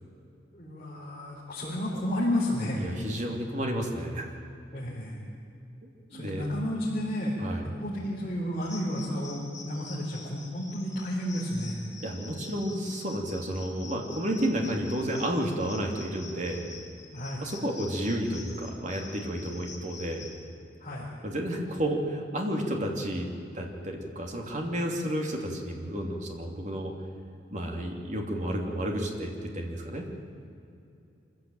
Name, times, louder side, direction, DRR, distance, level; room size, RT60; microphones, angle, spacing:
voice 1, 0.5-2.8 4.7-5.2 6.1-7.4 7.6-11.8 17.1-17.5 20.8-21.1, left 1 dB, 35° left, -7 dB, 4.4 m, -32 dB
voice 2, 2.8-4.3 5.8-6.5 7.4-7.7 12.0-16.6 17.4-20.2 21.2-23.3 23.5-26.9 27.5-30.1, equal, 40° right, 1 dB, 3.0 m, -31 dB
sound 1, 8.6-20.4, left 3 dB, 15° left, 4.0 m, -47 dB
25.0 x 15.0 x 9.1 m, 2.6 s
head